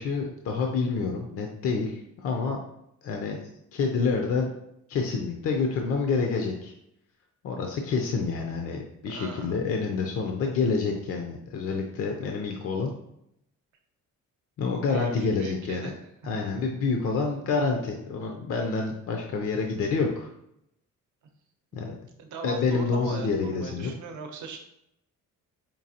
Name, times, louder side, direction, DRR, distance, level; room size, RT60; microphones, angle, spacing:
voice 1, 0.0-2.6 3.0-4.5 4.9-6.7 7.4-12.9 14.6-15.9 16.2-20.3 21.7-21.9 22.4-23.9, left 4 dB, 50° left, 2 dB, 0.5 m, -28 dB
voice 2, 9.1-9.6 14.9-16.0 21.7-21.8 22.2-24.6, right 5 dB, 65° right, 4 dB, 0.7 m, -39 dB
5.2 x 2.7 x 2.8 m, 0.78 s
cardioid pair, 170°, 31 cm